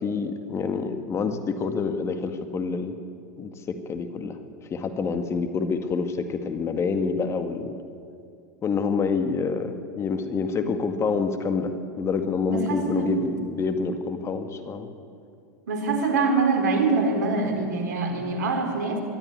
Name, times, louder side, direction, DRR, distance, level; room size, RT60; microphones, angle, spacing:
voice 1, 0.0-3.0 3.4-3.5 3.9-4.4 4.7-7.7 8.6-14.9, left 5 dB, 30° left, 8 dB, 2.0 m, -27 dB
voice 2, 12.5-13.1 15.7-19.0, right 3 dB, 75° right, 4 dB, 4.2 m, -24 dB
22.5 x 13.0 x 9.7 m, 2.4 s
hypercardioid pair, 100°, 10 cm